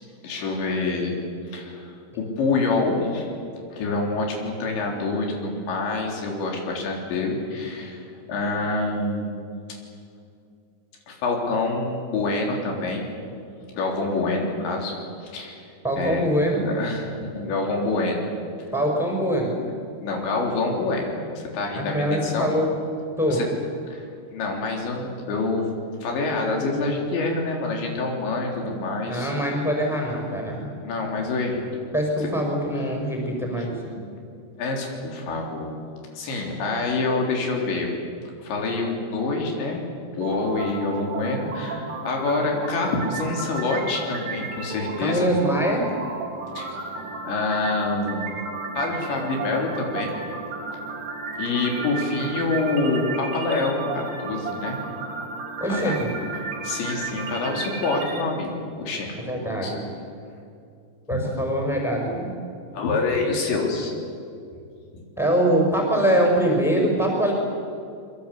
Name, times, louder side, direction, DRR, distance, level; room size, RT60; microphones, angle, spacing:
voice 1, 0.2-1.2 1.5-3.3 3.7-9.4 11.1-13.1 13.7-14.9 15.2-15.6 16.0-16.2 16.6-18.2 20.0-22.5 23.3-23.5 23.9-24.0 24.3-25.7 26.0-29.3 30.8-31.7 32.8-32.9 33.6-33.7 34.6-35.8 36.1-37.9 38.4-39.8 40.1-45.3 46.6-46.8 47.3-50.1 51.4-54.8 55.7-56.0 56.4-58.5 58.8-59.2 59.6-59.8 61.1-61.2 62.7-63.9, left 3 dB, 75° left, 1 dB, 5.8 m, -26 dB
voice 2, 15.8-16.6 18.7-19.6 21.7-22.7 23.2-23.4 28.6-28.7 29.0-30.7 31.9-33.8 45.0-45.9 55.6-56.1 59.2-59.8 61.1-62.3 65.2-67.3, equal, ahead, 0 dB, 5.3 m, -23 dB
sound 1, 40.2-58.2, right 4 dB, 60° right, 5.0 m, -33 dB
26.5 x 23.5 x 8.4 m, 2.4 s
omnidirectional pair, 5.2 m